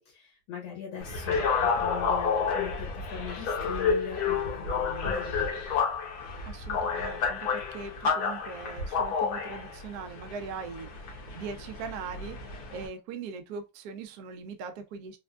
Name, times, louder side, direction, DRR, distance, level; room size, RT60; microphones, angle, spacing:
voice 1, 0.0-5.5, left 7 dB, 80° left, 2.2 m, -40 dB
sound 1, 1.0-12.9, left 5 dB, 65° left, 1.3 m, -30 dB
voice 2, 6.5-15.2, right 5 dB, 75° right, 0.9 m, -41 dB
4.2 x 2.2 x 2.3 m
omnidirectional pair, 2.0 m